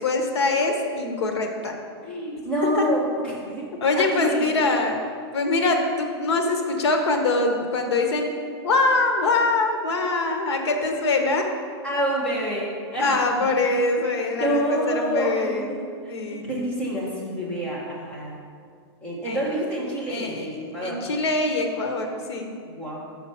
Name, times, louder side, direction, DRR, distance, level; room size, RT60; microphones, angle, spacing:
voice 1, 0.0-1.8 2.8-2.9 3.8-5.0 5.3-8.3 8.6-11.5 13.0-15.7 16.1-16.4 19.3-19.4 20.1-20.5 20.8-22.5, left 3 dB, 85° left, 4 dB, 1.1 m, -23 dB
voice 2, 2.0-3.7 3.9-4.6 11.8-13.5 14.4-15.8 16.3-18.4 19.0-21.0 22.7-23.0, right 1 dB, 10° left, -6 dB, 1.2 m, -27 dB
5.8 x 5.1 x 5.6 m, 2.1 s
supercardioid pair, 175°, 14 cm